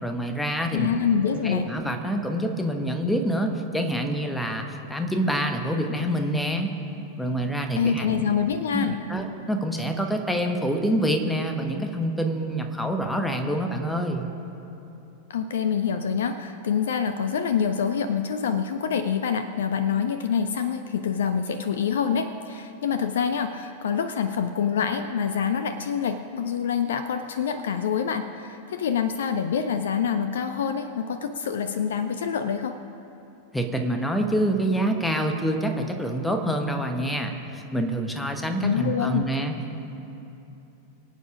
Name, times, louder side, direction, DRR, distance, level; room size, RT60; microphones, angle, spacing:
voice 1, 0.0-0.9 1.4-6.7 7.2-8.3 8.7-14.3 33.5-39.8, right 1 dB, 5° left, 5 dB, 1.3 m, -26 dB
voice 2, 0.7-1.7 7.8-9.0 15.3-32.8 38.6-39.2, left 7 dB, 60° left, 10 dB, 0.5 m, -26 dB
23.5 x 8.4 x 5.0 m, 2.9 s
figure-of-eight pair, 90°, 0 cm